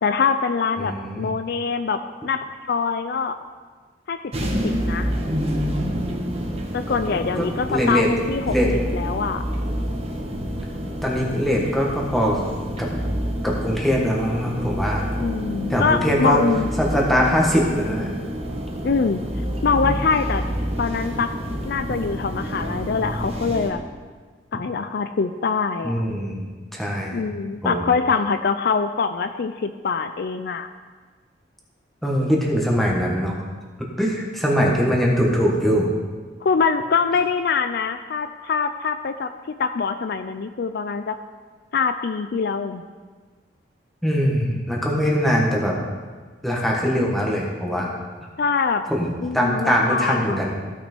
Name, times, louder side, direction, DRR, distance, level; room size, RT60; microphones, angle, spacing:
voice 1, 0.0-3.4 4.1-4.2 4.6-5.1 6.7-8.5 8.9-9.4 15.2-16.7 18.8-19.2 19.6-20.4 20.8-21.3 21.6-23.8 24.5-26.1 27.1-30.7 36.4-39.3 39.6-41.2 41.7-42.8 48.4-48.8 49.2-50.7, left 5 dB, 60° left, 9 dB, 0.4 m, -24 dB
voice 2, 0.8-1.3 7.1-8.1 8.5-8.7 11.0-12.4 12.8-12.9 13.4-15.1 15.7-16.4 16.8-18.1 25.8-27.2 27.6-27.8 32.0-33.4 34.0-35.9 44.0-45.8 46.4-47.9 48.9-50.5, equal, ahead, -3 dB, 1.6 m, -22 dB
sound 1, 4.3-23.7, equal, 35° right, 1.3 m, -28 dB
15.0 x 6.0 x 4.5 m, 1.5 s
head